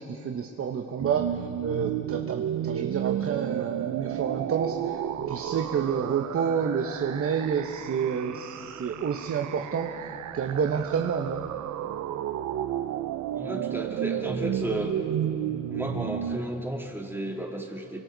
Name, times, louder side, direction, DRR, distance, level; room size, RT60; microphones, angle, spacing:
voice 1, 0.0-11.5, right 7 dB, 45° right, 4 dB, 1.0 m, -29 dB
sound 1, 1.0-16.4, right 11 dB, 70° right, 0.7 m, -32 dB
voice 2, 13.3-14.9 15.7-18.0, right 1 dB, 5° right, 0 dB, 2.8 m, -33 dB
28.0 x 24.5 x 4.0 m, 2.9 s
cardioid pair, 90°, 30 cm